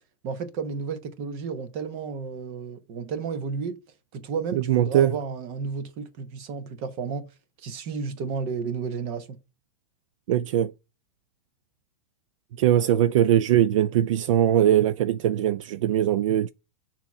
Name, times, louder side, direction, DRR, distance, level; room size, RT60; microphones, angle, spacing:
voice 1, 0.2-3.8 4.1-7.3 7.6-9.4, right 5 dB, 35° right, 1.0 m, -32 dB
voice 2, 4.5-5.2 10.3-10.7 12.6-16.5, right 11 dB, 65° right, 0.4 m, -21 dB
6.9 x 2.9 x 5.7 m
supercardioid pair, 160°, 17 cm